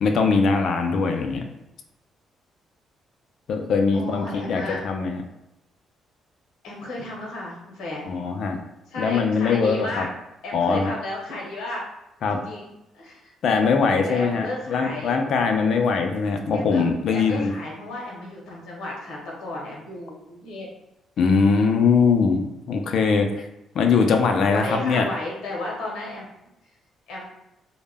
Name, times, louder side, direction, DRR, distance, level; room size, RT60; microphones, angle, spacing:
voice 1, 0.0-1.4 3.5-5.2 8.1-8.6 9.0-10.1 10.5-10.9 12.2-12.4 13.4-17.5 21.2-23.5 23.7-25.0, left 5 dB, 65° left, 4 dB, 0.3 m, -21 dB
voice 2, 3.9-4.8 6.6-8.1 8.9-10.1 10.4-11.9 12.4-13.3 14.0-15.2 16.5-16.8 17.1-20.7 24.5-26.3 27.1-27.3, left 2 dB, 85° left, -3 dB, 0.7 m, -33 dB
2.1 x 2.0 x 3.3 m, 0.87 s
cardioid pair, 90°, 0 cm